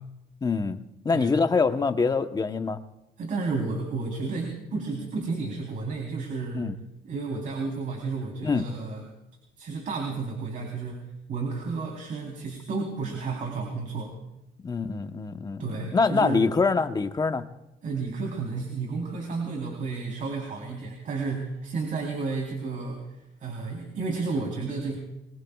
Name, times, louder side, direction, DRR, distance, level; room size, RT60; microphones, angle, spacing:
voice 1, 0.4-2.8 6.5-6.7 8.4-8.6 14.6-17.4, left 4 dB, 25° left, 8 dB, 1.0 m, -25 dB
voice 2, 3.2-6.7 7.0-9.1 9.6-11.0 11.3-14.1 15.6-16.5 17.8-23.0 23.4-25.0, right 4 dB, 50° right, 0 dB, 3.6 m, -32 dB
25.0 x 22.0 x 2.4 m, 0.91 s
cardioid pair, 110°, 17 cm